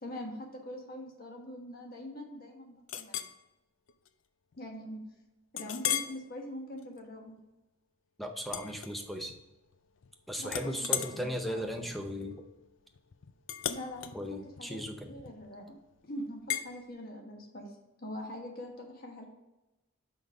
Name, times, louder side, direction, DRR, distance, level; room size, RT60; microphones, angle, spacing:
voice 1, 0.0-3.3 4.6-5.0 5.5-7.4 10.4-11.8 13.7-15.8 16.1-19.2, left 1 dB, 45° left, 1 dB, 1.4 m, -43 dB
Chink clink, 2.9-3.4 3.9-4.1 4.5-4.6 5.6-6.2 6.7-7.0 8.5-9.4 9.7-10.1 10.5-15.6 16.5-16.7, left 10 dB, 65° left, 0.4 m, -37 dB
voice 2, 8.2-9.3 10.3-12.4 14.1-15.1, equal, ahead, 4 dB, 0.6 m, -37 dB
6.1 x 5.2 x 4.8 m, 0.99 s
head